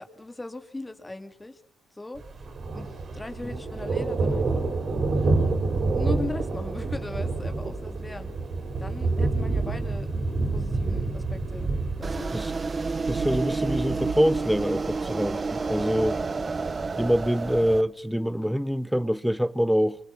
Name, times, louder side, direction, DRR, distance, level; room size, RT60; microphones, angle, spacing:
voice 1, 0.0-1.6 1.9-2.9 3.1-4.6 5.7-8.3 8.8-10.2 10.5-11.7 12.0-12.4 16.0-16.3, left 2 dB, 15° left, 2.4 m, -38 dB
Thunder, 2.2-17.7, right 3 dB, 50° right, 4.9 m, -29 dB
sound 1, 12.0-17.8, right 4 dB, 30° right, 1.1 m, -30 dB
voice 2, 13.1-16.2 17.0-20.0, equal, ahead, 1.0 m, -25 dB
26.5 x 25.0 x 5.8 m
cardioid pair, 90°, 0 cm